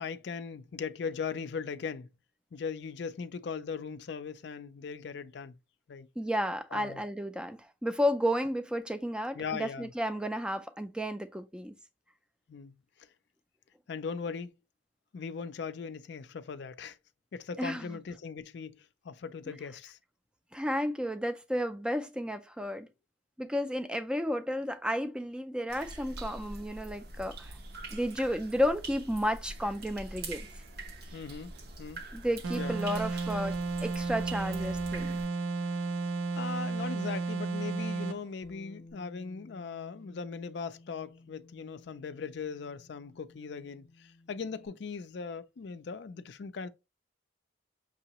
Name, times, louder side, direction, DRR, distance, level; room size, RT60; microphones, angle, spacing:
voice 1, 0.0-2.1 2.5-5.6 5.9-6.1 6.7-7.0 9.4-9.9 12.5-12.8 13.9-14.5 15.1-17.0 17.3-20.0 31.1-31.5 31.8-32.0 32.5-32.8 36.3-46.7, left 5 dB, 60° left, 0.4 m, -39 dB
voice 2, 6.2-11.7 17.6-18.0 20.5-22.9 23.4-27.5 27.9-30.5 32.1-35.1, equal, 5° right, 0.4 m, -32 dB
sound 1, 25.7-35.3, right 2 dB, 55° right, 0.7 m, -44 dB
sound 2, 32.4-38.2, right 3 dB, 90° right, 0.7 m, -33 dB
Bass guitar, 38.4-44.7, left 2 dB, 35° left, 0.8 m, -56 dB
6.0 x 2.8 x 2.9 m
head